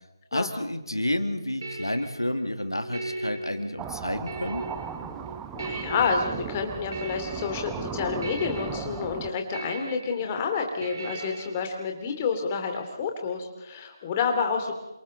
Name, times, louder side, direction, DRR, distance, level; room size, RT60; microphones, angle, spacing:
voice 1, 0.3-4.6, left 1 dB, 85° left, 7 dB, 2.2 m, -30 dB
sound 1, 0.9-11.5, right 2 dB, 55° right, 5.0 m, -39 dB
sound 2, 3.8-9.3, right 7 dB, 10° right, 0.9 m, -37 dB
voice 2, 5.5-14.7, left 5 dB, 20° left, 4 dB, 2.8 m, -29 dB
29.0 x 26.5 x 4.1 m, 1.0 s
figure-of-eight pair, 155°, 2 cm